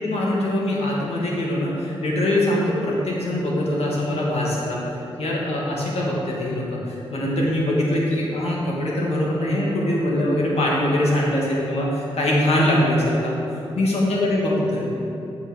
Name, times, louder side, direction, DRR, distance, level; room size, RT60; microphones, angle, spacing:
voice 1, 0.0-4.8 5.2-13.3 13.8-14.9, left 1 dB, 75° left, -4 dB, 1.8 m, -22 dB
7.6 x 5.5 x 5.0 m, 2.9 s
cardioid pair, 55°, 11 cm